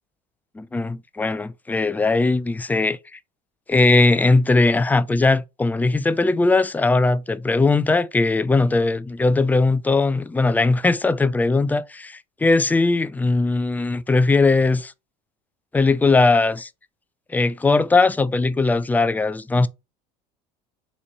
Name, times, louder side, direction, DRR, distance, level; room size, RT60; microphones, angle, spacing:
voice 1, 0.6-3.0 3.7-14.9 15.7-16.7 17.3-19.7, left 3 dB, 10° left, 0.3 m, -19 dB
4.1 x 3.1 x 4.0 m
hypercardioid pair, 70°, 21 cm